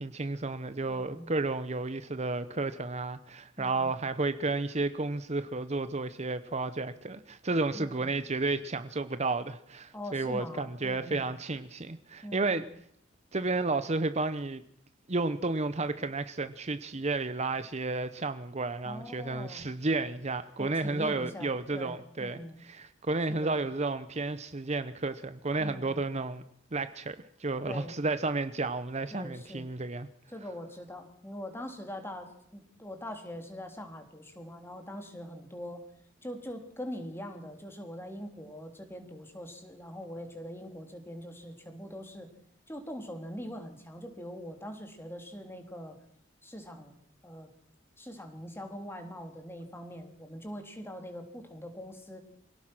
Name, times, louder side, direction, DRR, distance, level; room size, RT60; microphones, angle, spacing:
voice 1, 0.0-12.6 13.3-14.6 15.1-26.4 26.7-30.1, right 3 dB, 35° right, 0.9 m, -32 dB
voice 2, 0.9-1.3 3.6-3.9 7.7-8.1 9.9-11.2 12.2-12.6 18.8-19.7 20.6-22.6 23.3-23.6 25.6-26.0 27.6-27.9 29.1-29.7 30.3-35.8 36.2-42.3 42.7-46.0 46.4-47.0 47.2-47.6 48.0-52.2, equal, 10° left, 3.4 m, -42 dB
26.0 x 17.5 x 6.1 m
head